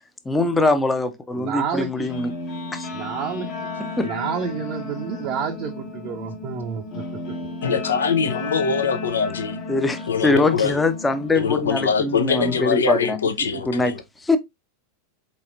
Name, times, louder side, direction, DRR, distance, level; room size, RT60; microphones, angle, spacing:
voice 1, 0.2-2.3 2.7-2.9 3.8-4.1 9.7-13.2 13.7-13.9 14.2-14.4, left 2 dB, 10° left, 0.7 m, -22 dB
voice 2, 1.4-2.1 2.9-3.7 4.0-7.0 13.4-13.6, right 6 dB, 40° right, 0.6 m, -29 dB
Guitar, 2.0-12.6, left 3 dB, 40° left, 1.2 m, -34 dB
voice 3, 7.6-9.6 10.1-10.7 11.3-14.0, left 6 dB, 70° left, 0.7 m, -23 dB
4.2 x 4.1 x 2.5 m
figure-of-eight pair, 90°, 0 cm